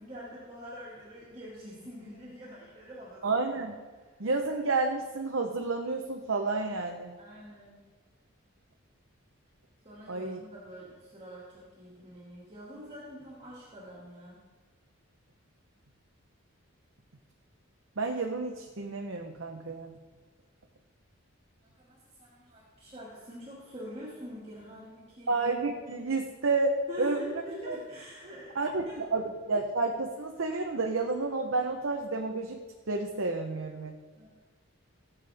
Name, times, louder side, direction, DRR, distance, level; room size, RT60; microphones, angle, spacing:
voice 1, 0.0-3.2 3.9-4.1 7.2-7.8 9.8-14.4 21.6-25.4 26.9-29.0 34.1-34.3, equal, 30° right, -7 dB, 2.2 m, -45 dB
voice 2, 3.2-3.7 4.2-7.2 10.1-10.4 18.0-19.9 25.3-27.8 28.5-32.6 32.9-33.9, right 3 dB, 70° right, 2 dB, 0.9 m, -30 dB
16.5 x 7.3 x 3.5 m, 1.4 s
head